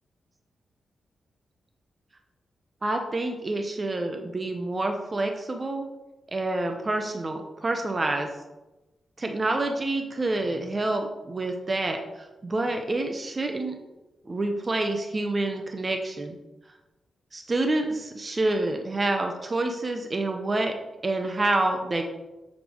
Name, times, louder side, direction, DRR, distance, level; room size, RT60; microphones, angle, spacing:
voice 1, 2.8-5.9 6.3-8.3 9.2-12.0 12.4-13.8 14.3-16.4 17.3-20.7 21.0-22.0, right 2 dB, 25° right, 4 dB, 0.6 m, -27 dB
7.2 x 3.3 x 6.1 m, 1.0 s
wide cardioid pair, 130°, 0 cm